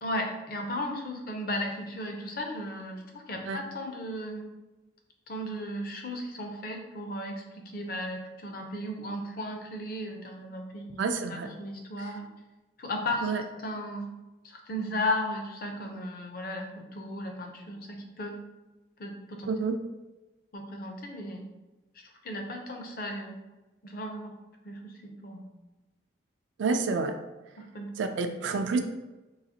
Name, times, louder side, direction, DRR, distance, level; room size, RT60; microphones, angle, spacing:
voice 1, 0.0-4.5 5.3-11.0 11.3-12.3 12.8-14.1 14.4-18.4 19.0-19.5 20.5-21.5 22.2-23.4 23.8-24.4 24.6-24.9 25.2-25.5 27.6-27.9, left 1 dB, 50° left, 2 dB, 0.5 m, -35 dB
voice 2, 11.0-11.5 12.0-12.1 13.2-13.4 19.5-19.8 26.6-27.2 28.0-28.8, right 4 dB, 75° right, 6 dB, 0.3 m, -29 dB
3.9 x 2.4 x 2.7 m, 1.1 s
head